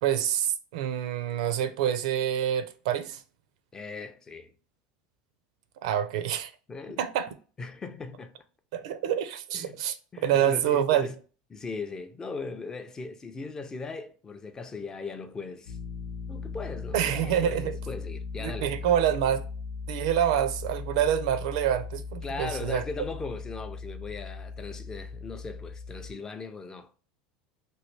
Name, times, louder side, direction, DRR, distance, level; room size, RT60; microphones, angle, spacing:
voice 1, 0.0-3.2 5.8-6.5 7.0-7.3 8.7-10.0 10.2-11.1 16.9-17.7 18.4-19.4 19.9-22.8, right 10 dB, 75° right, 0.5 m, -26 dB
voice 2, 3.7-4.5 6.7-7.0 7.6-8.4 9.5-9.8 10.1-11.1 11.5-15.8 16.3-18.7 22.2-27.0, left 4 dB, 15° left, 0.3 m, -38 dB
sound 1, 15.7-26.1, left 4 dB, 85° left, 0.6 m, -38 dB
3.0 x 2.6 x 3.1 m
supercardioid pair, 135°, 4 cm